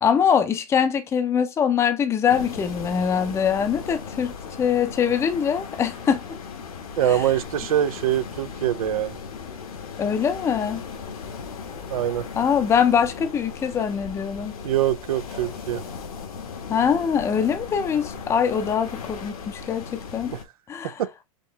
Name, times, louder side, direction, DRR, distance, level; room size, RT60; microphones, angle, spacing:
voice 1, 0.0-4.3 4.6-6.2 7.1-7.3 10.0-10.8 12.4-14.5 16.7-20.3 20.7-21.0, left 7 dB, 15° left, 0.5 m, -23 dB
sound 1, 2.3-20.4, left 5 dB, 90° left, 1.6 m, -37 dB
voice 2, 7.0-9.2 11.9-12.2 14.6-15.8 21.0-21.1, right 11 dB, 85° right, 0.5 m, -23 dB
5.1 x 2.9 x 3.3 m
supercardioid pair, 140°, 18 cm